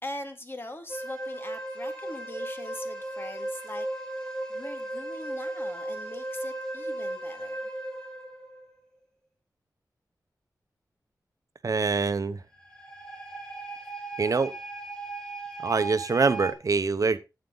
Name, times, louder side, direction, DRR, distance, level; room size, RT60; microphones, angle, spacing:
voice 1, 0.0-3.9 4.5-7.7, left 1 dB, 35° left, 6 dB, 2.1 m, -41 dB
sound 1, 0.9-8.7 12.5-16.5, right 2 dB, 10° left, 4.3 m, -36 dB
voice 2, 11.6-12.4 14.2-14.5 15.6-17.2, right 4 dB, 55° right, 13 dB, 0.9 m, -24 dB
12.0 x 8.4 x 3.9 m, 0.28 s
wide cardioid pair, 75°, 7 cm